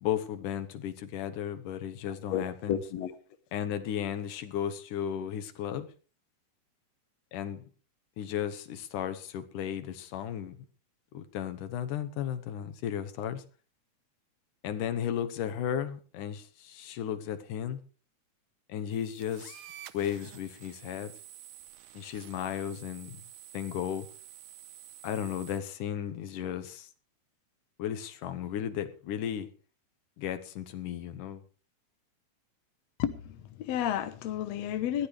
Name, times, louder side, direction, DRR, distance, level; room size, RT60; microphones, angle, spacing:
voice 1, 0.0-2.8 3.5-5.9 7.3-7.6 8.2-10.6 11.1-13.4 14.6-17.8 18.7-19.6 19.9-21.1 21.9-23.2 23.5-24.1 25.0-26.9 27.8-29.5 30.2-31.4, left 9 dB, 90° left, 2.7 m, -34 dB
voice 2, 2.1-3.1 33.0-35.1, left 10 dB, 65° left, 1.9 m, -32 dB
sound 1, 18.9-25.6, right 12 dB, 80° right, 2.4 m, -50 dB
20.5 x 14.5 x 3.3 m
omnidirectional pair, 3.5 m